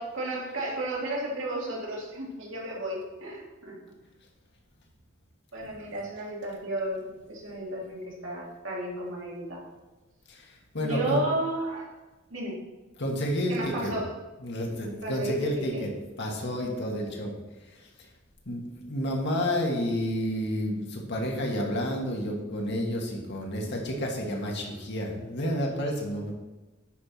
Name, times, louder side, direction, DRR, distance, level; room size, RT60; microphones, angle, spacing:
voice 1, 0.0-3.9 5.5-9.6 10.8-11.9 12.3-12.6 13.5-14.1 15.0-15.8, right 1 dB, 70° right, -3 dB, 2.6 m, -33 dB
voice 2, 5.6-5.9 10.3-11.2 13.0-13.9 14.4-15.9 16.2-17.3 17.7-17.9 18.5-26.3, equal, 60° left, 1 dB, 1.8 m, -30 dB
9.5 x 4.5 x 5.8 m, 1.2 s
head